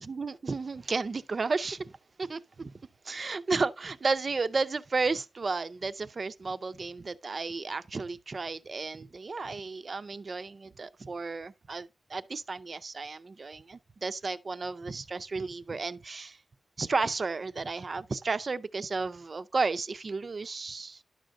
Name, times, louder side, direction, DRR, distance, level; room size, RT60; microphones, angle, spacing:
voice 1, 0.0-1.9 2.2-2.7 3.0-16.4 16.8-21.0, right 4 dB, 45° right, 0.5 m, -33 dB
11.0 x 6.3 x 2.5 m
wide cardioid pair, 125°, 0 cm